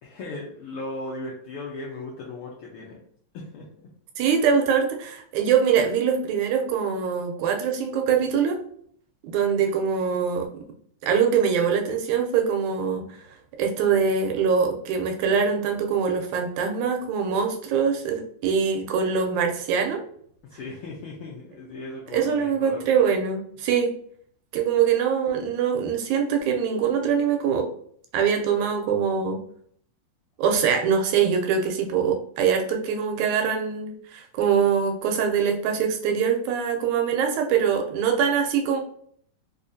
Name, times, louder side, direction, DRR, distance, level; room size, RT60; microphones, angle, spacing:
voice 1, 0.0-3.0 3.3-3.6 20.5-22.8, left 2 dB, 90° left, -3 dB, 1.2 m, -37 dB
voice 2, 4.2-8.6 9.2-10.5 11.0-13.1 13.6-20.0 22.1-23.9 24.5-27.7 28.1-29.4 30.4-38.8, right 7 dB, 90° right, 3 dB, 2.0 m, -23 dB
5.0 x 2.4 x 2.6 m, 0.62 s
omnidirectional pair, 3.3 m